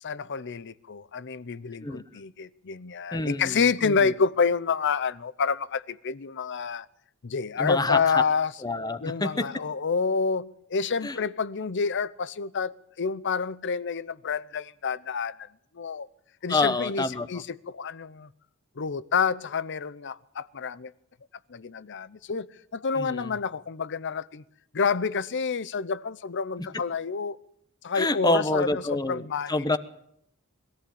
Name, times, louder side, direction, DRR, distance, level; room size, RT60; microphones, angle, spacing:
voice 1, 0.0-6.9 7.2-8.5 9.0-15.5 15.7-16.1 16.4-18.3 18.8-20.9 21.5-24.4 24.7-27.4 27.8-29.5, left 5 dB, 55° left, 0.7 m, -28 dB
voice 2, 3.1-4.1 7.6-8.2 8.6-9.5 11.0-11.2 16.5-17.3 23.0-23.4 26.6-26.8 27.9-29.8, left 2 dB, 20° left, 1.0 m, -27 dB
21.5 x 14.0 x 8.7 m
head